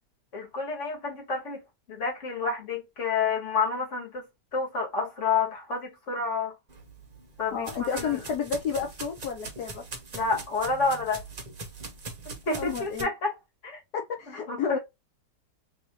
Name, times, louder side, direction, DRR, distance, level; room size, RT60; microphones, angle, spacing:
voice 1, 0.3-1.6 1.9-4.3 4.5-6.5 7.4-8.2 10.1-11.2 12.3-13.3 13.6-13.8 14.5-14.8, left 4 dB, 45° left, 1.9 m, -29 dB
sound 1, 6.7-13.0, right 3 dB, 30° right, 0.8 m, -42 dB
voice 2, 7.5-9.9 12.5-13.1 13.9-14.8, left 6 dB, 70° left, 1.2 m, -31 dB
3.7 x 2.9 x 2.8 m
omnidirectional pair, 1.8 m